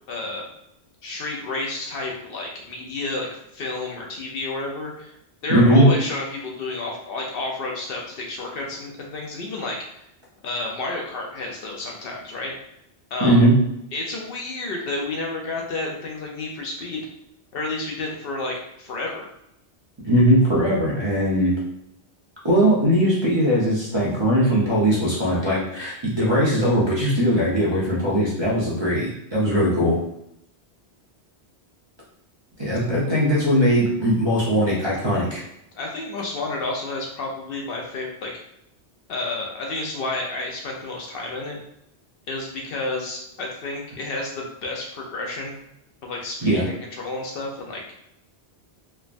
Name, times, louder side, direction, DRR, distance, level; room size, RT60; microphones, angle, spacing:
voice 1, 0.1-0.5 1.0-3.3 3.5-5.1 5.4-9.8 10.4-12.5 13.1-13.4 13.9-17.0 17.5-19.3 35.7-38.3 39.1-41.6 42.3-45.6 46.0-47.9, left 2 dB, 65° left, 0 dB, 0.7 m, -30 dB
voice 2, 5.5-5.9 13.2-13.5 20.0-21.5 22.4-29.9 32.6-35.4 46.4-46.6, equal, 30° right, -7 dB, 0.6 m, -19 dB
3.2 x 2.1 x 2.4 m, 0.80 s
omnidirectional pair, 1.1 m